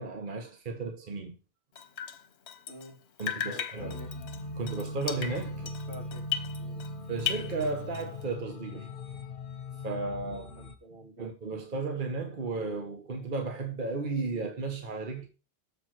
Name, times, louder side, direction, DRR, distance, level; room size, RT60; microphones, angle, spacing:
voice 1, 0.0-1.4 3.2-3.9 4.6-5.6 7.1-8.9 9.8-10.4 11.2-15.3, right 3 dB, 50° right, 1.3 m, -34 dB
Drip, 1.7-2.9 3.2-6.9 7.2-8.2, left 9 dB, 70° left, 1.1 m, -37 dB
voice 2, 2.7-3.0 3.2-4.1 5.6-6.2 6.6-6.9 10.3-11.3, left 1 dB, 85° right, 3.1 m, -49 dB
sound 1, 3.8-10.8, left 2 dB, 55° left, 1.2 m, -40 dB
7.2 x 4.8 x 5.9 m
omnidirectional pair, 1.1 m